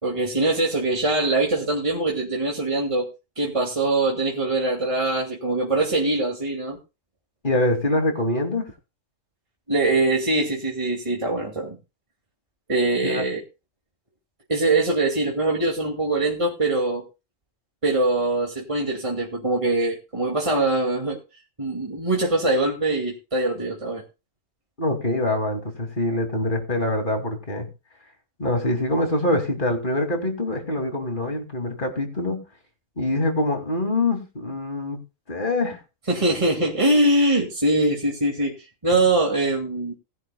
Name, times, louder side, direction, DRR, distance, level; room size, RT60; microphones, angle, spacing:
voice 1, 0.0-3.1 3.4-6.8 9.7-11.8 12.7-13.4 14.5-17.0 17.8-21.2 21.6-24.0 36.1-38.6 38.8-39.9, right 2 dB, 25° right, -1 dB, 2.4 m, -23 dB
voice 2, 7.4-8.7 13.0-13.3 24.8-27.7 28.4-32.4 33.0-35.0 35.3-35.8 38.9-39.0, left 1 dB, 40° left, 4 dB, 2.8 m, -24 dB
19.5 x 11.0 x 2.3 m, 0.29 s
omnidirectional pair, 1.4 m